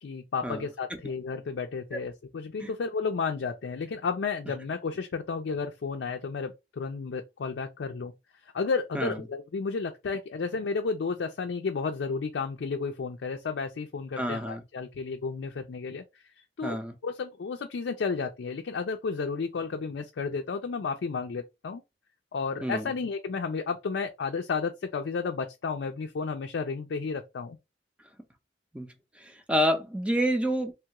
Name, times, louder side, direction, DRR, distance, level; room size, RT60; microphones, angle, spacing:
voice 1, 0.0-8.1 8.5-16.0 16.6-16.8 17.0-21.8 22.3-27.6, left 5 dB, 80° left, 0.4 m, -32 dB
voice 2, 14.2-14.6 16.6-16.9 22.6-22.9 28.7-28.9 29.2-30.7, equal, 5° right, 0.5 m, -28 dB
3.2 x 2.3 x 2.9 m
head